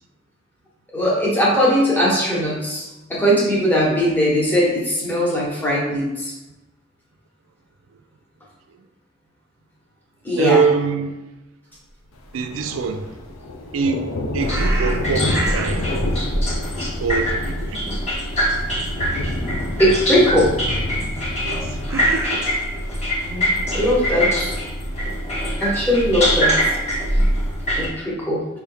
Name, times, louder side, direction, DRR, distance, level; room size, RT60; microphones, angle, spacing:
voice 1, 0.9-2.8 3.1-6.3 10.2-10.6 19.8-20.5 23.2-24.5 25.6-26.5 27.7-28.4, equal, 10° left, 1.2 m, -19 dB
voice 2, 10.4-11.1 12.3-13.0 13.7-16.0 16.8-18.0 21.4-22.5, right 5 dB, 75° right, 0.4 m, -24 dB
Thunder, 12.1-27.7, left 2 dB, 85° left, 0.5 m, -31 dB
sound 1, 14.4-27.9, equal, 30° left, 1.0 m, -23 dB
sound 2, 14.5-16.0 16.4-18.0 18.3-18.5 19.3-19.4 21.2-23.0, right 2 dB, 15° right, 0.4 m, -31 dB
5.5 x 3.4 x 2.2 m
head